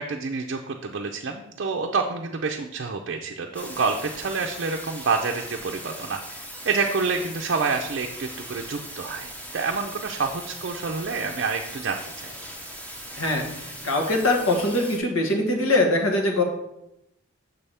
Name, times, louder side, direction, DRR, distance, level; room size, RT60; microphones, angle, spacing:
voice 1, 0.0-12.3, right 4 dB, 55° right, 2 dB, 0.5 m, -28 dB
sound 1, 3.5-15.0, equal, 5° left, 0.7 m, -39 dB
voice 2, 13.2-16.4, left 2 dB, 85° left, 1 dB, 1.3 m, -22 dB
6.7 x 3.4 x 5.5 m, 0.84 s
head